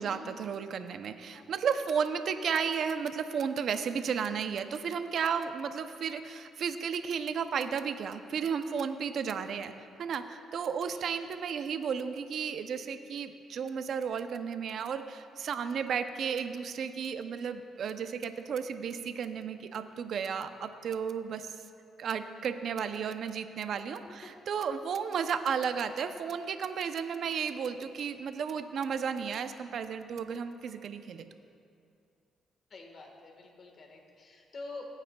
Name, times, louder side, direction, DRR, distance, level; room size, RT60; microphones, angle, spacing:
voice 1, 0.0-21.6 22.0-31.3, right 6 dB, 65° right, 9 dB, 0.5 m, -33 dB
voice 2, 32.7-34.8, left 3 dB, 50° left, 2 dB, 1.5 m, -47 dB
17.5 x 9.0 x 2.3 m, 2.4 s
cardioid pair, 90°, 0 cm